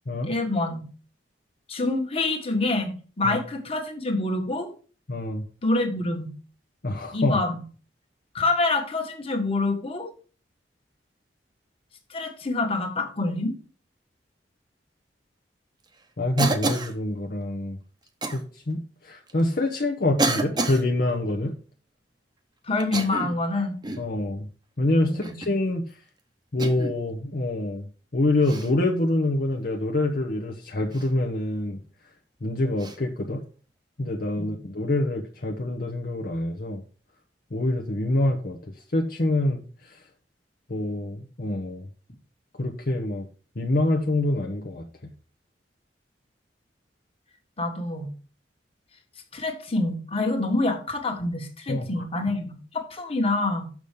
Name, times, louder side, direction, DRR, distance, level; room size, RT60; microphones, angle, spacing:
voice 1, 0.2-0.8 1.7-4.7 5.6-6.3 7.1-7.6 8.3-10.1 12.1-13.5 22.7-23.8 25.0-25.4 34.4-34.5 47.6-48.1 49.3-53.7, left 2 dB, 35° left, 3 dB, 1.6 m, -26 dB
voice 2, 5.1-5.4 6.8-7.4 16.2-17.8 18.3-21.5 24.0-24.5 24.8-26.0 26.5-27.9 28.1-31.8 32.4-33.4 34.0-36.8 37.5-38.6 38.9-40.0 40.7-41.9 42.6-43.3 43.6-45.1 51.7-52.0, left 1 dB, 55° left, 1 dB, 0.9 m, -26 dB
Cough, 16.4-17.0 18.2-18.4 19.3-19.4 20.2-20.8 22.8-23.4 23.8-24.1 25.2-25.6 26.6-27.0 28.4-28.7 30.9-31.1 32.8-33.0, right 2 dB, 25° right, 1.0 m, -28 dB
7.0 x 6.1 x 5.1 m, 0.38 s
head